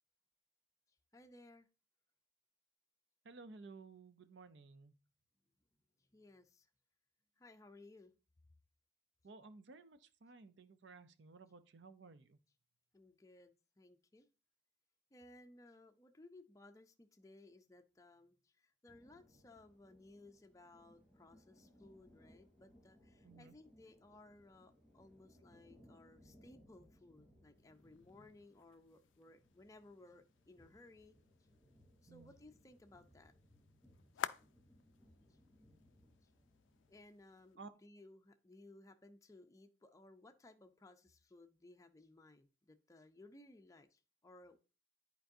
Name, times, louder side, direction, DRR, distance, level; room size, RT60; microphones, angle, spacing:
voice 1, 1.1-1.7 6.1-6.7 7.4-8.1 12.9-14.3 15.1-31.2 32.0-33.3 34.2-34.3 36.9-44.8, left 2 dB, 15° left, 0.5 m, -61 dB
voice 2, 3.2-4.9 9.2-12.4 23.2-23.6 32.1-32.3 37.6-37.7, right 3 dB, 70° right, 0.6 m, -56 dB
sound 1, 18.9-37.0, equal, 5° right, 3.3 m, -67 dB
sound 2, 27.5-37.6, left 9 dB, 80° left, 0.3 m, -53 dB
10.0 x 4.6 x 2.6 m
head